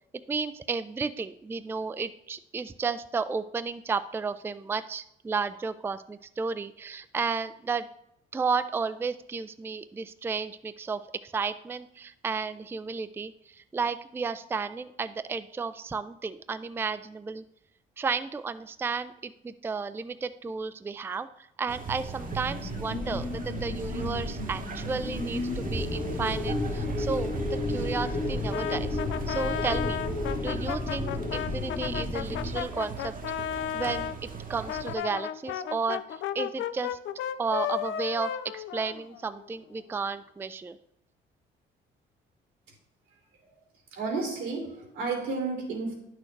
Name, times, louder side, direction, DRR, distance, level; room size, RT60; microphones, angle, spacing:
voice 1, 0.3-7.9 8.3-17.4 18.0-29.0 29.3-30.0 30.4-33.1 33.7-37.0 37.4-40.8, right 5 dB, 10° right, 12 dB, 0.3 m, -33 dB
sound 1, 21.7-35.0, right 5 dB, 45° right, 1.0 m, -39 dB
sound 2, 22.2-32.6, left 2 dB, 30° left, 1.0 m, -33 dB
Brass instrument, 28.5-34.2 34.7-39.5, left 10 dB, 75° left, 0.4 m, -34 dB
voice 2, 43.9-45.9, right 4 dB, 90° right, -1 dB, 2.6 m, -32 dB
9.7 x 6.3 x 3.2 m, 0.77 s
cardioid pair, 90°, 20 cm